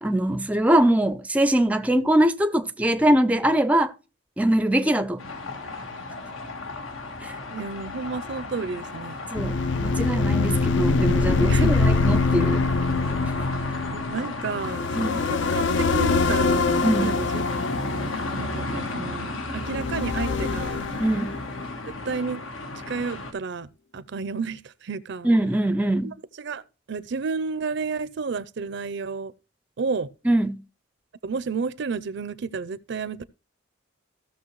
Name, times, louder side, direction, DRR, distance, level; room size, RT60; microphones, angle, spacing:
voice 1, 0.0-3.9 4.4-5.3 7.2-7.4 9.3-12.6 14.9-15.2 16.8-17.2 21.0-21.3 25.2-26.1 30.2-30.6, right 1 dB, 5° right, 0.4 m, -22 dB
sound 1, 5.2-23.3, left 2 dB, 85° left, 1.6 m, -34 dB
voice 2, 7.5-9.2 11.2-11.9 13.9-17.5 18.3-20.8 22.1-22.4 22.9-25.3 26.0-26.6 26.9-29.3 29.8-30.1 31.2-33.2, right 4 dB, 60° right, 0.5 m, -31 dB
sound 2, 9.3-18.9 19.6-21.7, left 3 dB, 60° left, 0.4 m, -24 dB
15.0 x 6.4 x 3.1 m
head